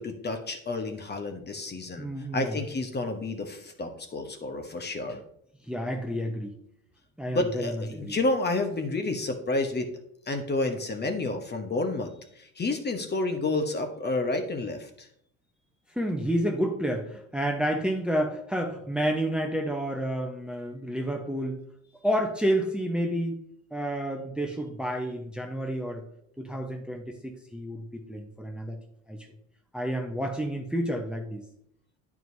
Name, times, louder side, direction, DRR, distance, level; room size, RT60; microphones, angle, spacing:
voice 1, 0.0-2.1 2.3-5.2 7.3-9.9 10.3-15.1, left 2 dB, 25° left, 5 dB, 1.1 m, -30 dB
voice 2, 2.0-2.6 5.6-6.5 7.2-8.2 15.9-21.6 22.0-23.4 23.7-26.0 26.4-28.8 29.1-29.3 29.7-31.4, equal, ahead, 3 dB, 1.0 m, -30 dB
10.5 x 4.8 x 2.7 m, 0.72 s
figure-of-eight pair, 60°, 39 cm